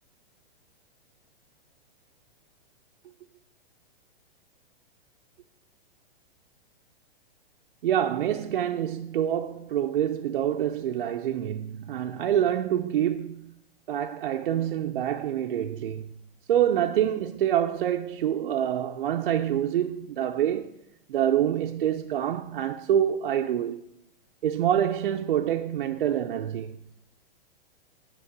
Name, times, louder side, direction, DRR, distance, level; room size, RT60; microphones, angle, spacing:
voice 1, 7.8-13.6 13.9-16.2 16.5-20.7 21.1-23.8 24.4-26.8, right 10 dB, 65° right, 0.5 m, -26 dB
9.0 x 4.1 x 7.1 m
hypercardioid pair, 180°, 30 cm